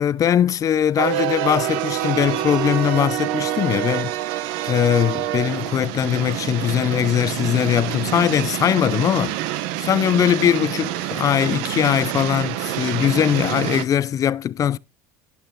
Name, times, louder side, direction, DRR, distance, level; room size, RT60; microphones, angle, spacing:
voice 1, 0.0-4.1 4.6-14.8, left 10 dB, 40° left, 0.5 m, -21 dB
sound 1, 1.0-13.8, right 14 dB, 75° right, 0.9 m, -27 dB
11.0 x 9.0 x 3.7 m
supercardioid pair, 100°, 9 cm